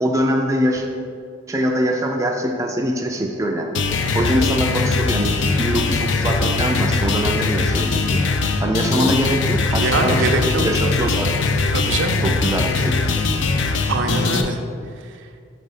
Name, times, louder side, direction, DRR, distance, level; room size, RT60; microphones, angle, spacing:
voice 1, 0.0-0.9 1.5-3.9 4.1-8.3 8.6-11.4 12.2-13.2, equal, 15° right, 1 dB, 0.3 m, -23 dB
sound 1, 3.7-14.4, left 3 dB, 65° left, 0.4 m, -21 dB
voice 2, 9.7-10.6 11.7-12.2 13.9-14.6, right 3 dB, 70° right, 4 dB, 0.5 m, -22 dB
5.1 x 3.8 x 5.5 m, 2.2 s
head